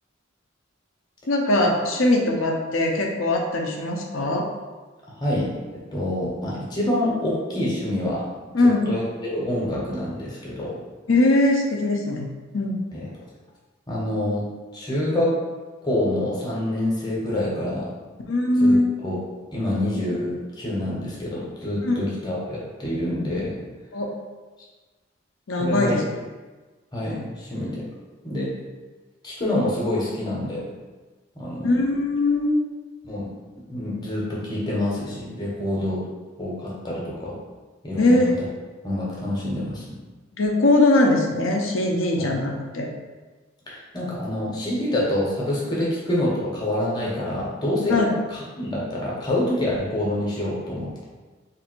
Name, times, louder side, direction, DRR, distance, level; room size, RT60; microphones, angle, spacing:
voice 1, 1.3-4.5 8.5-8.9 11.1-12.3 12.5-12.8 18.3-18.9 21.8-22.0 23.9-24.1 25.5-26.0 31.6-32.6 38.0-38.4 40.4-42.9 47.9-48.1, left 2 dB, 80° left, 1 dB, 0.7 m, -20 dB
voice 2, 5.2-5.5 5.9-8.2 8.6-10.7 12.9-13.0 13.9-14.4 14.7-15.3 15.8-17.9 18.6-18.8 19.0-19.2 19.5-23.6 25.6-26.0 26.9-27.8 28.2-28.5 29.2-30.6 31.4-31.7 33.0-33.3 33.7-36.0 36.4-37.4 37.8-38.2 38.8-40.0 42.2-42.3 43.7-48.0 48.3-51.0, left 1 dB, 20° left, -5 dB, 0.8 m, -26 dB
3.3 x 2.5 x 4.4 m, 1.3 s
head